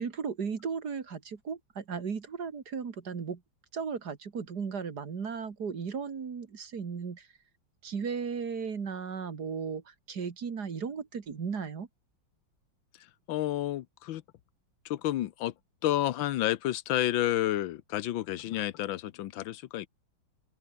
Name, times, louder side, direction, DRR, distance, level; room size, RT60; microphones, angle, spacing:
voice 1, 0.0-3.4 3.7-7.3 7.8-11.9, right 6 dB, 55° right, 2.5 m, -36 dB
voice 2, 13.0-14.2 14.8-15.5 15.8-19.9, left 13 dB, 90° left, 1.5 m, -30 dB
open air
omnidirectional pair, 2.1 m